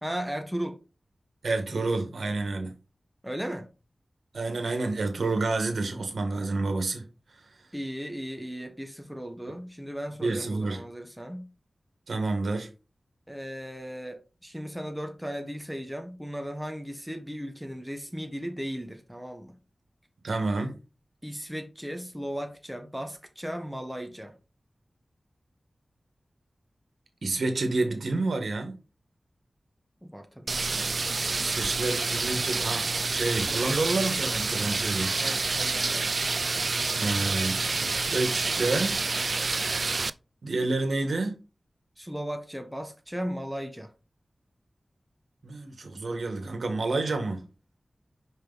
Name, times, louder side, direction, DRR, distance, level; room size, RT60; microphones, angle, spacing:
voice 1, 0.0-0.8 3.2-3.7 7.7-11.5 13.3-19.6 21.2-24.3 30.0-30.7 35.2-36.2 42.0-43.9, equal, 5° right, 1.3 m, -36 dB
voice 2, 1.4-2.7 4.3-7.1 10.2-10.8 12.1-12.7 20.2-20.8 27.2-28.8 31.4-35.1 37.0-39.0 40.4-41.3 45.4-47.4, right 3 dB, 85° right, 1.6 m, -29 dB
sound 1, 30.5-40.1, right 3 dB, 65° right, 0.3 m, -28 dB
5.5 x 5.2 x 4.0 m
wide cardioid pair, 55°, 0 cm